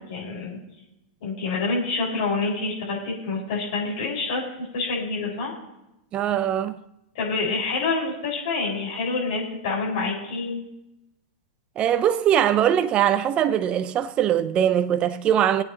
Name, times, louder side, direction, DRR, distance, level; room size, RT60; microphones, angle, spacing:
voice 1, 0.1-0.6 1.2-5.5 7.1-10.6, left 3 dB, 65° left, 4.9 m, -27 dB
voice 2, 6.1-6.8 11.8-15.6, right 10 dB, 30° right, 0.6 m, -21 dB
22.0 x 8.6 x 2.9 m
hypercardioid pair, 110°, 4 cm